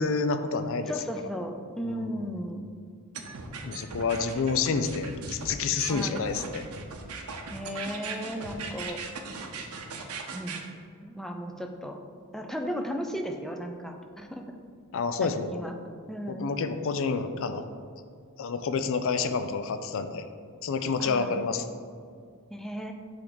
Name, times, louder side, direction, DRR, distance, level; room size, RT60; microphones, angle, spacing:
voice 1, 0.0-0.9 1.8-2.3 3.6-6.7 14.9-15.6 16.3-17.6 18.4-20.3 20.6-21.6, left 4 dB, 60° left, 9 dB, 0.4 m, -29 dB
voice 2, 0.9-2.7 5.9-6.3 7.5-9.0 10.3-10.6 11.0-12.0 12.3-14.5 15.2-15.7 16.1-16.5 21.0-21.3 22.5-22.9, equal, ahead, 3 dB, 0.4 m, -35 dB
sound 1, 3.1-10.6, right 4 dB, 80° right, 0.7 m, -38 dB
8.6 x 3.5 x 4.0 m, 2.1 s
head